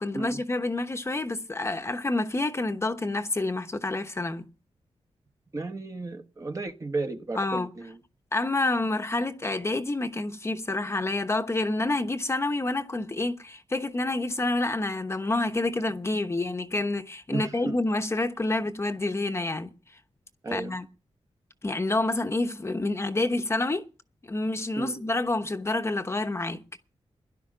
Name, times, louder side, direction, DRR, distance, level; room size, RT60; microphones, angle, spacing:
voice 1, 0.0-4.5 7.4-7.7 8.3-19.7 20.5-20.9 21.6-23.8 24.3-26.6, left 2 dB, 25° left, 1.0 m, -28 dB
voice 2, 5.5-8.0 17.3-17.8 20.4-20.8 24.8-25.0, right 3 dB, 30° right, 1.2 m, -34 dB
17.0 x 11.5 x 4.9 m
wide cardioid pair, 150°, 11 cm